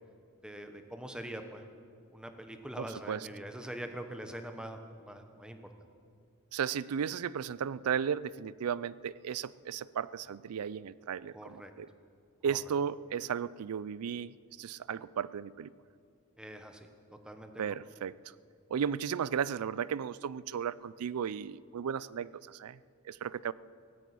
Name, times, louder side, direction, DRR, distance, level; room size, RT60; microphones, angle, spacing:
voice 1, 0.4-1.6 2.1-5.6 11.3-11.7 12.4-12.6 16.4-16.9 17.2-17.5, right 1 dB, 5° right, 6 dB, 1.0 m, -43 dB
voice 2, 2.8-3.3 6.5-11.9 12.4-15.7 17.6-18.2 18.7-22.8 23.1-23.5, right 7 dB, 70° right, 19 dB, 0.4 m, -35 dB
17.5 x 9.2 x 8.4 m, 2.3 s
head